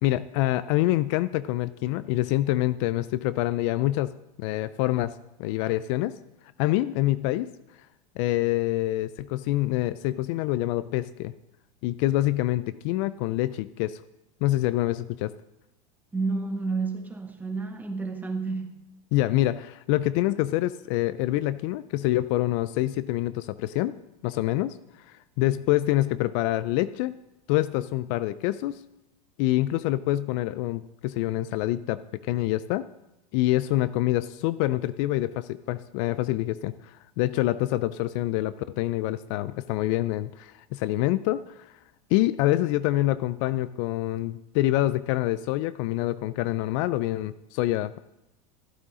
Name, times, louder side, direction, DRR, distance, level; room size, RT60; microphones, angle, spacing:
voice 1, 0.0-5.1 5.4-6.1 6.6-7.5 8.2-11.3 11.8-14.0 14.4-15.3 19.1-23.9 24.2-24.8 25.1-27.2 27.5-28.8 29.4-32.9 33.3-41.6 42.1-48.0, left 16 dB, 60° left, 16 dB, 0.4 m, -26 dB
voice 2, 16.1-18.7, right 4 dB, 10° right, 4 dB, 1.4 m, -30 dB
14.5 x 8.2 x 3.7 m, 0.92 s
supercardioid pair, 115°, 18 cm